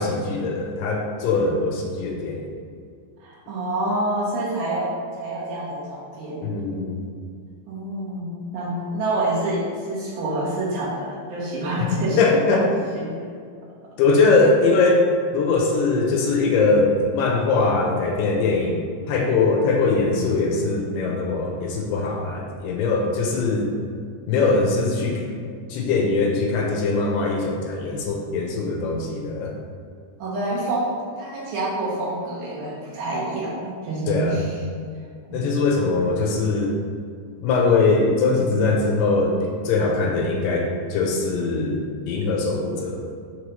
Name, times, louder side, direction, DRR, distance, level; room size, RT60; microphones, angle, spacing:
voice 1, 0.0-2.4 6.4-7.0 11.8-12.7 14.0-15.0 15.3-23.7 24.3-25.3 25.7-29.5 34.1-34.4 35.3-36.8 37.4-43.2, left 3 dB, 80° left, 0 dB, 2.6 m, -21 dB
voice 2, 3.2-4.9 5.2-6.6 7.7-12.6 13.0-13.1 30.2-34.6 35.3-35.6, right 1 dB, 70° right, -6 dB, 2.6 m, -27 dB
6.7 x 3.2 x 5.4 m, 2.2 s
omnidirectional pair, 4.9 m